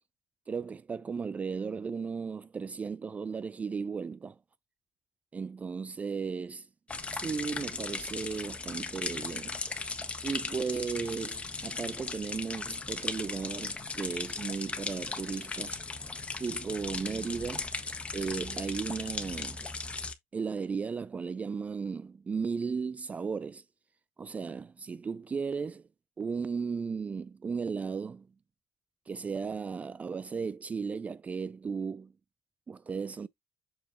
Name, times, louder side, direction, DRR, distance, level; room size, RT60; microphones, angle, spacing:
voice 1, 0.5-4.4 5.3-6.7 7.1-9.9 10.2-15.7 16.4-17.7 18.1-19.6 20.3-23.6 24.2-25.8 26.2-28.3 29.1-32.1 32.7-33.3, right 5 dB, 30° right, 0.3 m, -35 dB
sound 1, 6.9-20.1, left 3 dB, 25° left, 1.5 m, -37 dB
7.1 x 4.9 x 2.9 m
supercardioid pair, 75°, 5 cm